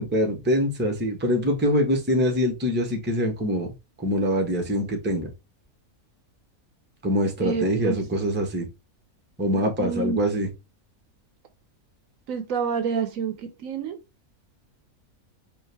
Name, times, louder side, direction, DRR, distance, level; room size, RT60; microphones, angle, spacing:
voice 1, 0.0-3.7 4.0-5.3 7.0-8.7 9.4-10.5, equal, 10° right, 0.7 m, -24 dB
voice 2, 7.4-8.0 9.5-10.2 12.3-14.0, right 5 dB, 70° right, 1.1 m, -28 dB
4.6 x 2.5 x 3.3 m
omnidirectional pair, 1.5 m